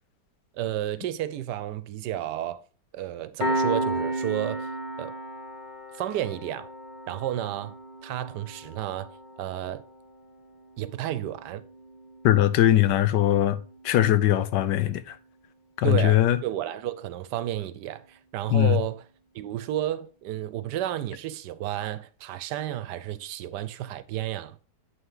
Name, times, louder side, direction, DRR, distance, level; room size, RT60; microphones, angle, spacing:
voice 1, 0.5-2.6 2.9-4.7 5.0-5.2 5.9-6.7 7.1-7.8 8.0-9.1 9.4-9.8 10.8-11.6 15.8-19.0 19.3-24.6, right 12 dB, 80° right, 1.2 m, -31 dB
Piano, 3.4-14.5, right 1 dB, 35° left, 1.0 m, -35 dB
voice 2, 12.2-13.6 13.8-15.2 15.8-16.4 18.5-18.8, left 13 dB, 90° left, 1.3 m, -20 dB
8.0 x 5.7 x 3.7 m
omnidirectional pair, 1.8 m